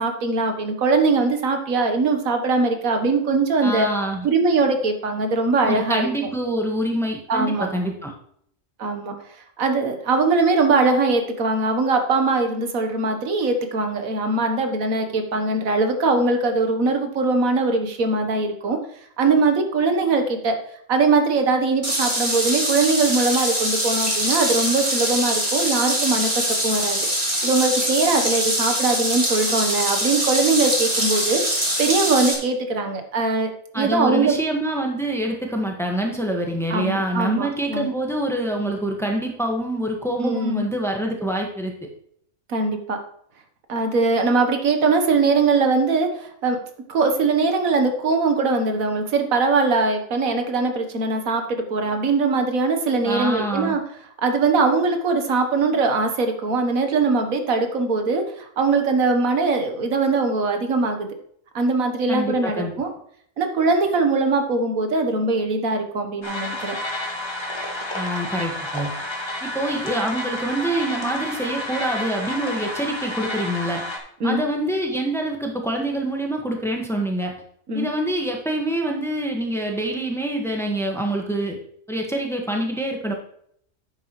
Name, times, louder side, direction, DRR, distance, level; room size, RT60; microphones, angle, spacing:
voice 1, 0.0-3.9 4.2-6.0 7.3-7.7 8.8-9.1 9.6-18.8 19.2-20.5 20.9-27.0 27.4-33.5 33.7-34.4 36.7-37.9 40.2-40.6 42.5-43.0 43.7-46.6 46.9-51.4 51.7-53.8 54.2-61.1 61.5-62.9 63.4-66.8 74.2-74.4 77.7-77.9, right 3 dB, 90° right, 5 dB, 1.7 m, -21 dB
voice 2, 3.6-4.2 5.6-8.1 33.7-41.9 53.0-53.8 62.1-62.7 67.9-68.9 69.4-73.8 74.2-77.3 77.7-81.6 81.9-83.1, right 1 dB, ahead, 1 dB, 1.5 m, -25 dB
sound 1, 21.8-32.3, equal, 25° right, 2.8 m, -23 dB
sound 2, 66.2-74.0, left 1 dB, 20° left, 1.6 m, -30 dB
10.0 x 8.4 x 3.1 m, 0.66 s
omnidirectional pair, 1.4 m